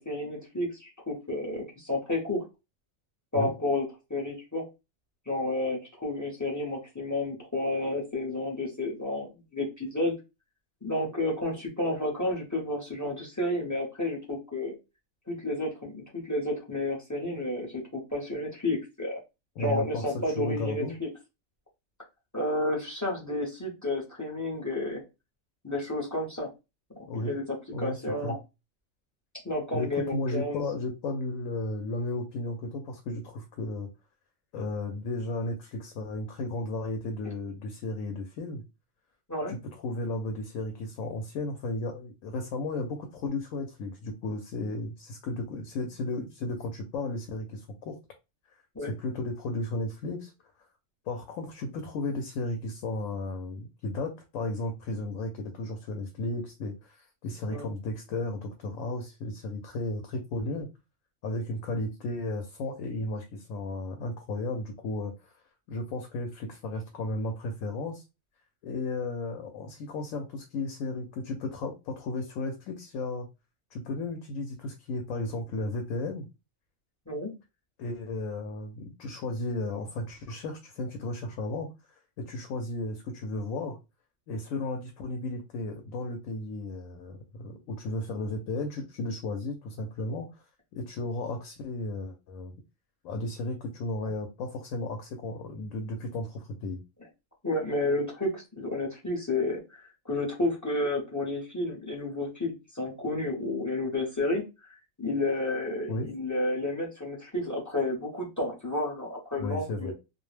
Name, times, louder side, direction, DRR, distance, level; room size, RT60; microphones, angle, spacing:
voice 1, 0.0-2.4 3.3-4.7 5.3-10.1 10.8-14.7 15.3-19.2 19.6-21.1 22.3-25.0 25.6-26.5 27.1-27.4 27.8-28.4 29.4-30.6 39.3-39.5 48.7-48.9 57.5-57.7 77.1-77.3 97.4-99.8 100.0-104.4 105.0-109.9, left 2 dB, 20° left, 0.5 m, -31 dB
voice 2, 19.6-21.0 27.1-27.4 27.7-27.9 28.2-28.4 29.7-33.9 34.5-38.6 39.5-48.0 48.9-50.3 51.1-60.7 61.2-65.3 65.7-68.0 68.6-73.3 73.7-76.3 77.8-81.7 82.2-83.8 84.3-90.4 90.7-92.5 93.0-96.8 105.9-106.1 109.4-109.9, left 2 dB, 75° left, 0.9 m, -34 dB
2.4 x 2.0 x 3.1 m
omnidirectional pair, 1.4 m